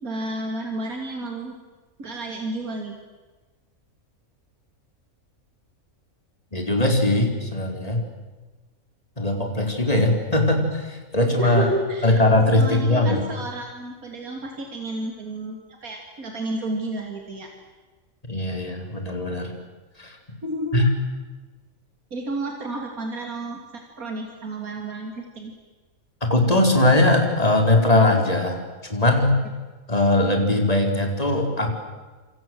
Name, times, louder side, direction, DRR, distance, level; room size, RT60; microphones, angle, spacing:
voice 1, 0.0-1.6 2.0-3.0 11.4-12.2 12.6-17.5 20.4-20.8 22.1-25.5, right 2 dB, 75° right, 2 dB, 3.3 m, -31 dB
voice 2, 6.5-8.0 9.2-11.7 12.0-13.2 18.3-19.5 20.0-20.2 20.7-20.9 26.3-28.6 28.9-29.3 29.9-31.7, left 1 dB, 25° left, 3 dB, 4.6 m, -20 dB
27.5 x 27.0 x 7.9 m, 1.3 s
omnidirectional pair, 1.5 m